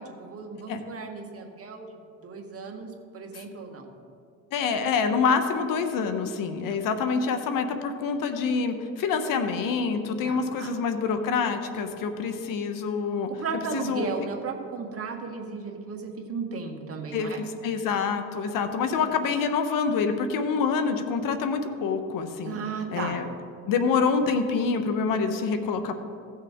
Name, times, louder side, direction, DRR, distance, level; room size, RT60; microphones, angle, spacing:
voice 1, 0.0-1.9 2.2-3.9 6.4-6.8 10.2-10.7 13.4-17.4 22.4-23.2, right 5 dB, 40° right, 2 dB, 1.7 m, -35 dB
voice 2, 4.5-13.4 13.7-14.2 17.1-22.6 22.9-23.3 23.7-26.0, left 5 dB, 65° left, 8 dB, 1.1 m, -26 dB
15.5 x 6.6 x 3.6 m, 2.5 s
supercardioid pair, 85°, 36 cm